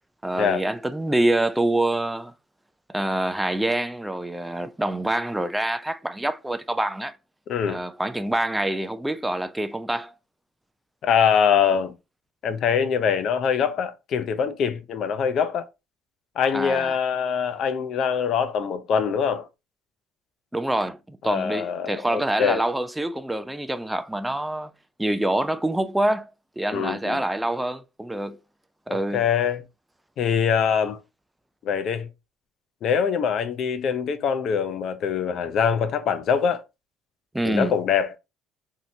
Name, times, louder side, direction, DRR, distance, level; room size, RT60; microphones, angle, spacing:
voice 1, 0.2-2.3 2.9-7.2 7.7-10.1 16.5-16.9 20.5-24.7 25.0-26.3 26.6-28.4 28.9-29.2 37.3-37.8, right 1 dB, 5° right, 0.3 m, -26 dB
voice 2, 7.5-7.8 11.0-11.9 12.4-15.7 16.4-19.5 21.2-22.6 26.7-27.2 28.9-29.6 30.2-31.0 31.6-32.1 32.8-36.6 37.4-38.1, left 7 dB, 55° left, 0.5 m, -23 dB
3.0 x 2.8 x 2.7 m
cardioid pair, 115°, 0 cm